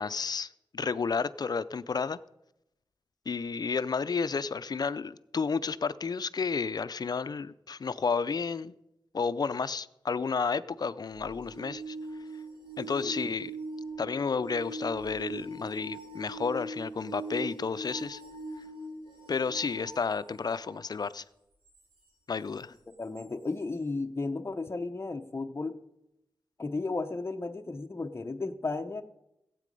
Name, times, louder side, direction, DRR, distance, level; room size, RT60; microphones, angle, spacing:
voice 1, 0.0-2.2 3.3-8.7 9.1-12.0 12.8-13.5 14.0-18.2 19.3-21.2 22.3-22.7, left 5 dB, 55° left, 15 dB, 0.5 m, -31 dB
sound 1, 11.1-20.8 23.2-23.3, right 2 dB, 75° right, 4.2 m, -41 dB
voice 2, 23.0-25.8 26.6-29.0, left 3 dB, 30° left, 6 dB, 0.8 m, -34 dB
15.5 x 8.5 x 5.3 m, 0.87 s
wide cardioid pair, 75°, 8 cm